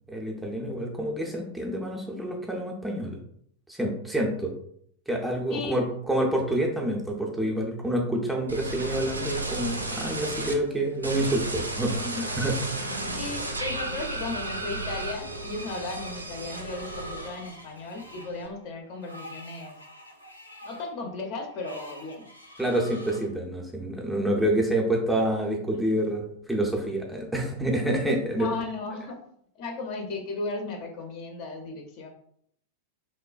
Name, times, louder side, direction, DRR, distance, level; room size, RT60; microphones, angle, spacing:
voice 1, 0.1-3.2 3.7-4.6 5.1-12.0 12.4-12.9 22.6-28.5, right 1 dB, 5° right, -1 dB, 0.5 m, -27 dB
voice 2, 5.5-5.8 11.9-12.3 13.1-19.8 20.6-22.3 25.7-26.0 28.4-29.2 29.5-32.1, left 3 dB, 45° left, 2 dB, 0.5 m, -35 dB
sound 1, 8.5-10.5 11.0-17.6 17.9-18.5, right 2 dB, 80° right, 0.3 m, -33 dB
Screech, 15.3-23.3, equal, 90° left, 0.4 m, -46 dB
3.1 x 2.1 x 2.3 m, 0.67 s
figure-of-eight pair, 90°, 0 cm